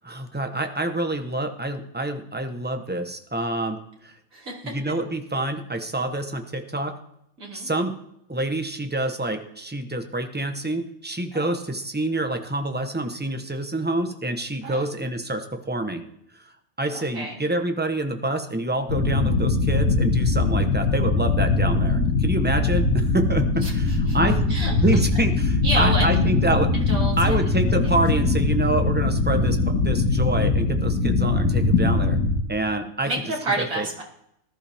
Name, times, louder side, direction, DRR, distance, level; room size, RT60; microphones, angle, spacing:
voice 1, 0.0-3.8 4.0-4.1 4.6-7.0 7.5-7.9 8.3-16.0 16.8-24.5 24.8-26.7 27.2-32.2 32.5-33.1 33.6-33.9, right 2 dB, 10° right, 6 dB, 0.9 m, -27 dB
voice 2, 4.3-4.7 7.4-7.7 11.3-11.5 14.6-14.9 16.9-17.4 23.6-24.2 24.5-24.7 25.6-26.1 26.9-27.4 27.8-28.0 33.0-34.0, right 2 dB, 70° right, -3 dB, 3.7 m, -29 dB
sound 1, 18.9-32.4, left 3 dB, 85° left, 2.3 m, -21 dB
19.5 x 12.0 x 3.5 m, 0.76 s
omnidirectional pair, 1.5 m